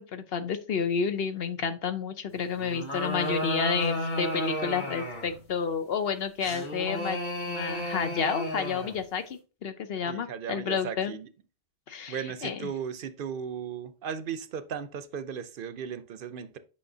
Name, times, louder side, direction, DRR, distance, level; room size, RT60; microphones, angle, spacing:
voice 1, 0.0-7.2 7.5-11.2 11.9-12.7, left 6 dB, 65° left, 0.9 m, -30 dB
sound 1, 2.6-5.4 6.4-9.0, left 1 dB, 45° left, 2.0 m, -33 dB
voice 2, 10.1-11.3 12.1-16.6, right 7 dB, 60° right, 0.7 m, -36 dB
8.5 x 5.7 x 2.7 m
omnidirectional pair, 1.1 m